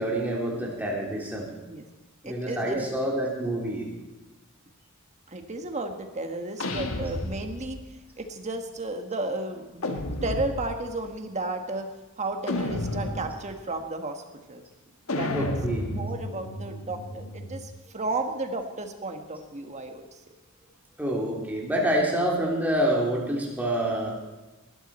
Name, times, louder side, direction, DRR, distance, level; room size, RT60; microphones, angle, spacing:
voice 1, 0.0-1.5 2.2-3.9 15.3-15.9 21.0-24.2, right 1 dB, 10° right, -3 dB, 3.1 m, -27 dB
voice 2, 2.2-3.0 5.3-11.9 12.2-14.2 14.5-14.6 15.2-15.3 15.9-20.2, right 2 dB, 35° right, 5 dB, 1.4 m, -33 dB
sound 1, 6.6-7.9 9.8-10.9 12.5-13.5 15.1-17.8, left 1 dB, 75° left, 1.5 m, -32 dB
19.5 x 12.5 x 4.3 m, 1.1 s
head